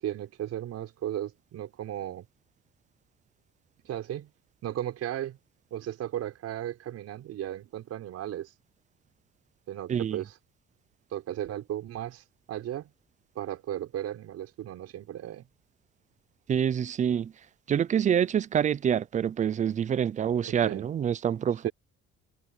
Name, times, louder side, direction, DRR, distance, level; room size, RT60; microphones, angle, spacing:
voice 1, 0.0-2.3 3.8-4.3 4.6-5.4 5.7-8.5 9.7-10.3 11.1-12.9 13.4-15.5 20.6-20.9 21.6-21.7, right 12 dB, 55° right, 5.7 m, -35 dB
voice 2, 9.9-10.2 16.5-17.3 17.7-21.7, right 8 dB, 25° right, 0.3 m, -26 dB
cardioid pair, 175°, 29 cm